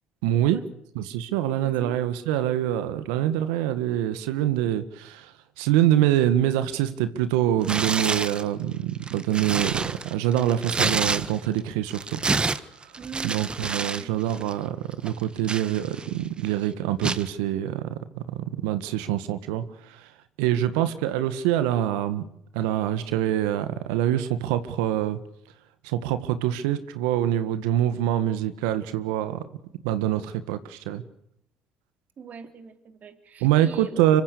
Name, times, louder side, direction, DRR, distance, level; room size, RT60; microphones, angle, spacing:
voice 1, 0.2-0.6 1.0-12.2 12.5-12.9 13.2-20.1 20.4-22.2 22.5-25.2 25.8-29.4 29.8-31.0 33.4-34.2, right 12 dB, 80° right, 12 dB, 1.8 m, -25 dB
voice 2, 1.6-2.0 13.0-14.1 20.5-20.9 32.2-34.2, right 6 dB, 45° right, 9 dB, 3.6 m, -43 dB
Tearing, 7.6-8.4 9.0-11.6 11.9-14.0 14.3-14.5 15.1-16.2 17.0-17.3, right 4 dB, 25° right, 1.6 m, -28 dB
25.5 x 24.5 x 6.8 m, 0.74 s
hypercardioid pair, 65°, 4 cm